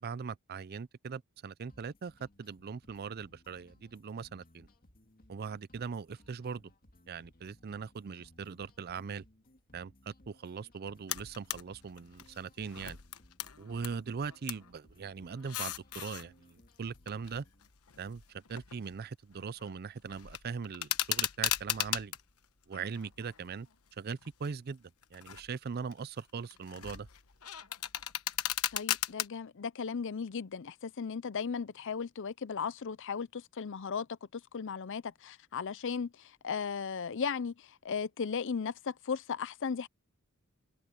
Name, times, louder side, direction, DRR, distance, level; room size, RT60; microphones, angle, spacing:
voice 1, 0.0-4.7 5.3-6.7 7.1-9.2 9.7-13.0 13.6-17.4 18.0-22.2 22.7-23.7 24.0-27.1, right 5 dB, 45° right, 0.4 m, -40 dB
sound 1, 1.7-17.7, left 1 dB, 40° left, 2.2 m, -63 dB
sound 2, 11.1-11.6 12.0-14.0 14.2-14.7 15.3-16.2 16.9-19.0 19.3-19.7 20.1-22.2 22.7-23.7 24.2-24.5 25.0-25.5 25.9-29.3, left 12 dB, 80° left, 1.1 m, -37 dB
voice 2, 28.7-34.1 34.3-39.9, left 6 dB, 60° left, 0.6 m, -36 dB
head